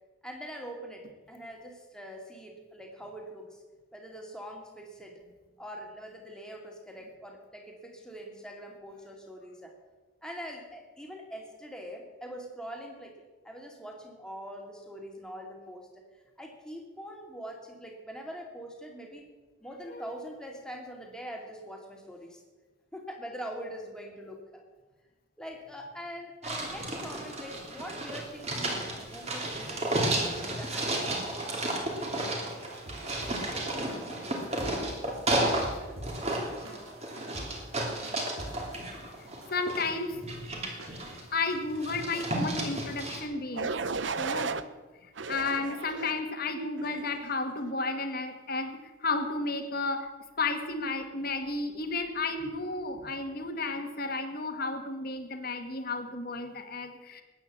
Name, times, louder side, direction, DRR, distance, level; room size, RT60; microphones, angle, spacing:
voice 1, 0.2-3.6 3.9-5.2 5.6-9.7 10.2-16.0 16.4-19.3 19.6-22.4 22.9-24.6 25.4-31.2, equal, 5° left, 1 dB, 2.4 m, -43 dB
sound 1, 26.4-35.7 36.0-39.9 40.2-41.4 41.7-43.2, right 1 dB, 30° right, 2.8 m, -32 dB
sound 2, 32.6-40.5 40.8-41.2 41.5-41.9, right 1 dB, 85° right, 3.7 m, -46 dB
voice 2, 39.5-40.2 41.3-43.7 44.2-44.6 45.0-50.1 50.4-57.2, left 3 dB, 45° left, 6 dB, 1.6 m, -33 dB
sound 3, 43.6-44.6 45.2-46.2 46.8-47.2, right 4 dB, 60° right, 0.7 m, -34 dB
20.5 x 9.1 x 7.2 m, 1.3 s
head